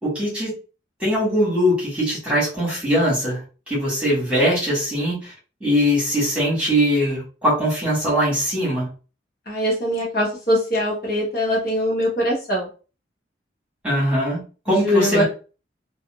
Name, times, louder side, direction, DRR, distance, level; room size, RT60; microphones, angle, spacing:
voice 1, 0.0-0.5 1.0-3.4 3.7-5.3 5.6-8.9 13.8-15.2, equal, 5° right, -7 dB, 1.5 m, -21 dB
voice 2, 9.5-12.7 14.7-15.2, equal, 50° left, -4 dB, 1.2 m, -22 dB
3.5 x 2.3 x 2.3 m, 0.34 s
head